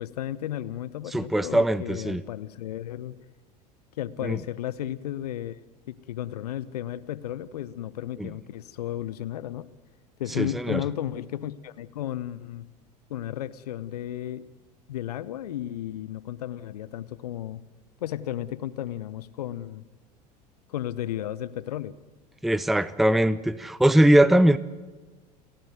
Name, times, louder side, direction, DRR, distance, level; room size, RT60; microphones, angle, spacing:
voice 1, 0.0-3.2 4.0-5.6 5.9-9.7 10.2-12.6 13.1-14.5 14.9-17.6 18.0-19.8 20.7-21.9, left 12 dB, 65° left, 17 dB, 0.8 m, -34 dB
voice 2, 1.1-2.2 4.2-4.4 8.2-8.3 10.4-10.8 22.4-24.6, right 1 dB, ahead, 18 dB, 0.6 m, -21 dB
29.5 x 12.0 x 9.2 m, 1.3 s
figure-of-eight pair, 75°, 21 cm